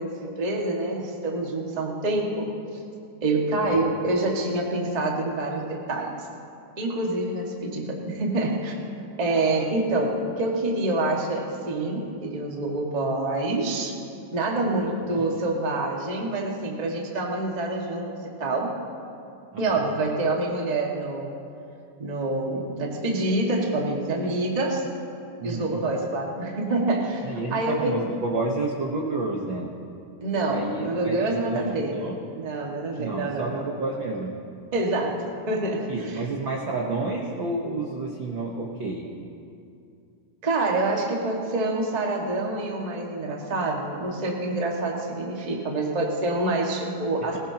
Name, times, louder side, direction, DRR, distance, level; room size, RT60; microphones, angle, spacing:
voice 1, 0.0-2.5 3.2-6.1 6.8-8.8 9.2-14.0 14.3-18.7 19.6-21.3 22.0-24.8 25.4-27.9 30.2-32.0 32.3-33.6 34.7-35.9 40.4-47.4, right 2 dB, 30° right, -1 dB, 0.7 m, -26 dB
voice 2, 25.4-25.8 27.2-29.7 30.5-32.2 33.0-34.3 35.9-39.1 47.2-47.4, right 3 dB, 75° right, -1 dB, 1.1 m, -30 dB
20.0 x 20.0 x 2.9 m, 2.5 s
omnidirectional pair, 3.9 m